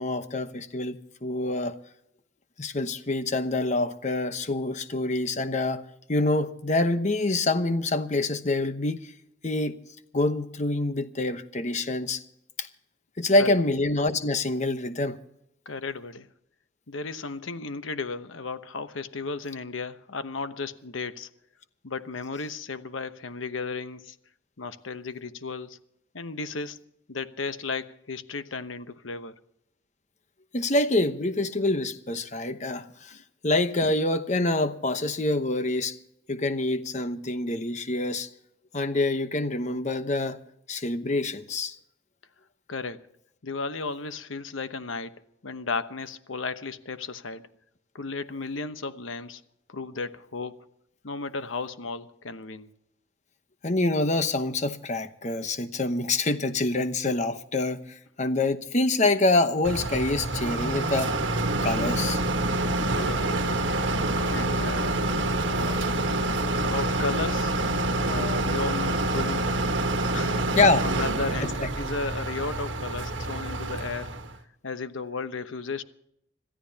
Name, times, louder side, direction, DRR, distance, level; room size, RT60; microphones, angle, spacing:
voice 1, 0.0-1.8 2.6-5.8 6.1-9.0 9.4-9.7 10.1-12.2 12.6-12.7 13.2-15.2 30.5-33.2 33.4-36.0 36.3-38.3 38.7-40.4 40.7-41.7 53.6-57.8 58.2-61.1 61.6-62.2 70.6-70.8 71.6-71.7, left 2 dB, 35° left, 1.0 m, -26 dB
voice 2, 15.7-16.3 16.9-21.3 21.8-24.1 24.6-25.8 26.1-26.8 27.1-29.3 42.7-43.0 43.4-45.1 45.4-47.4 47.9-49.4 49.7-50.7 51.0-52.7 62.6-63.6 64.3-65.0 65.4-65.9 66.6-67.5 68.1-69.5 70.1-70.4 70.8-74.1 74.6-75.8, left 4 dB, 85° left, 1.0 m, -34 dB
sound 1, 59.6-74.3, right 2 dB, 70° right, 1.4 m, -27 dB
26.5 x 14.0 x 2.9 m
head